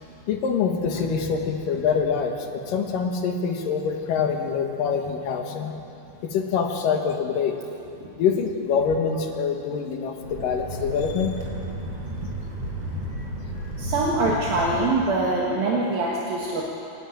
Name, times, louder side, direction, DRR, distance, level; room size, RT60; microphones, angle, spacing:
voice 1, 0.3-5.7 6.2-7.6 8.2-11.3 13.1-13.3, left 6 dB, 65° left, 3 dB, 2.8 m, -25 dB
sound 1, 10.2-14.9, right 1 dB, 40° right, 3.9 m, -33 dB
voice 2, 13.8-16.6, right 2 dB, 65° right, -4 dB, 3.4 m, -23 dB
27.5 x 11.0 x 9.2 m, 2.9 s
omnidirectional pair, 4.6 m